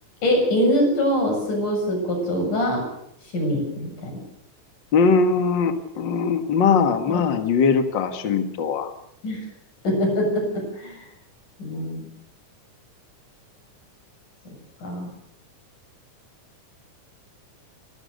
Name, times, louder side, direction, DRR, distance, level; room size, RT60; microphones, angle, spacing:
voice 1, 0.2-2.9 3.3-4.1 7.1-7.2 9.2-9.5 9.8-11.1 11.6-12.1 14.8-15.1, equal, 75° left, 1 dB, 8.7 m, -23 dB
voice 2, 4.9-8.9, left 5 dB, 45° left, 7 dB, 2.0 m, -21 dB
29.5 x 13.5 x 6.7 m, 0.76 s
omnidirectional pair, 3.6 m